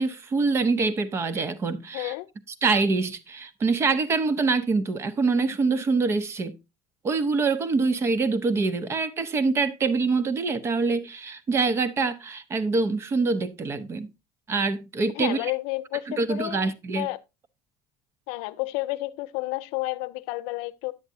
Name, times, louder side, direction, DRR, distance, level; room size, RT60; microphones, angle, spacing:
voice 1, 0.0-2.1 2.6-6.6 7.0-14.1 14.5-15.5 16.2-17.1, right 4 dB, 25° right, 0.7 m, -25 dB
voice 2, 1.9-2.3 15.1-16.6 16.9-17.2 18.3-20.9, left 20 dB, 80° left, 0.6 m, -31 dB
9.6 x 8.0 x 2.7 m
cardioid pair, 145°, 10 cm